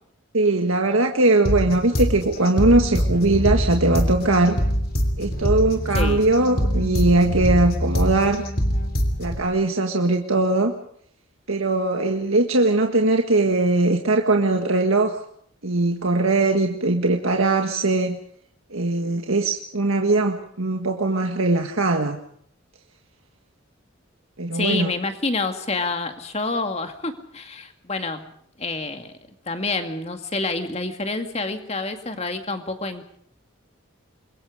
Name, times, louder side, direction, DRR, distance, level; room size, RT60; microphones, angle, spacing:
voice 1, 0.3-4.6 5.2-8.4 9.2-10.7 11.5-15.2 15.6-18.2 18.7-22.2 24.4-24.9, right 2 dB, 80° right, 3 dB, 1.8 m, -20 dB
sound 1, 1.4-9.4, equal, 45° left, 3.1 m, -24 dB
voice 2, 24.5-28.2 28.6-29.1 29.5-33.2, left 3 dB, 30° left, 6 dB, 2.3 m, -28 dB
28.0 x 22.5 x 5.1 m, 0.63 s
head